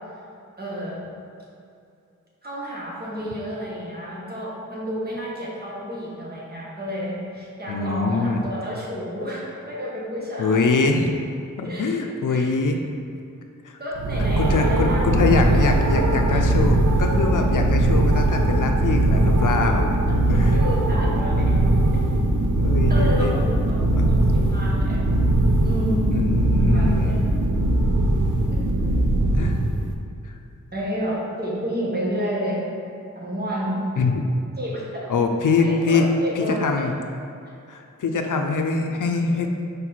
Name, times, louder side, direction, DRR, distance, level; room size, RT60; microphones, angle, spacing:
voice 1, 0.6-1.0 2.4-10.8 11.6-12.5 13.8-15.7 16.3-16.4 20.3-21.6 22.9-25.0 25.6-26.2 26.5-27.3 28.5-29.3 30.7-32.7 33.1-33.8 34.6-35.1 35.6-36.9, equal, 30° right, -5 dB, 1.4 m, -31 dB
voice 2, 7.7-8.5 10.4-11.1 11.6-12.8 13.6-13.8 14.4-19.9 20.3-20.6 22.5-23.4 23.9-24.1 26.1-27.2 29.3-29.6 30.2-30.3 34.0-34.3 35.1-36.0 36.4-36.9 37.7-39.5, left 4 dB, 80° left, 4 dB, 0.5 m, -23 dB
sound 1, 13.9-29.9, right 1 dB, 75° right, 0.6 m, -20 dB
5.1 x 4.5 x 4.1 m, 2.6 s
wide cardioid pair, 100°, 31 cm